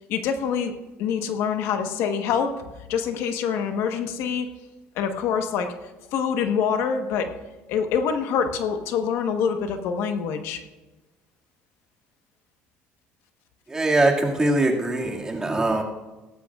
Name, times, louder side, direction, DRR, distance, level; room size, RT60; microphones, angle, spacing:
voice 1, 0.1-0.7 1.0-2.5 2.9-4.5 5.0-5.7 6.1-7.3 7.7-10.6, left 7 dB, 75° left, 6 dB, 1.2 m, -25 dB
voice 2, 13.7-15.8, right 2 dB, 15° right, 0 dB, 2.1 m, -22 dB
17.0 x 14.5 x 2.4 m, 1.1 s
cardioid pair, 120°, 4 cm